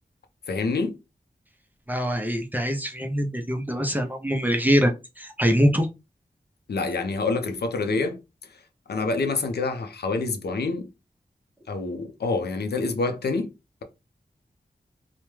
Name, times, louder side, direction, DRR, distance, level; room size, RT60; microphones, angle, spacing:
voice 1, 0.5-1.0 6.7-8.2 8.9-10.9 11.7-13.5, left 3 dB, 80° left, 0.5 m, -27 dB
voice 2, 1.9-5.9, equal, 10° right, 0.5 m, -23 dB
2.2 x 2.1 x 3.0 m
cardioid pair, 45°, 17 cm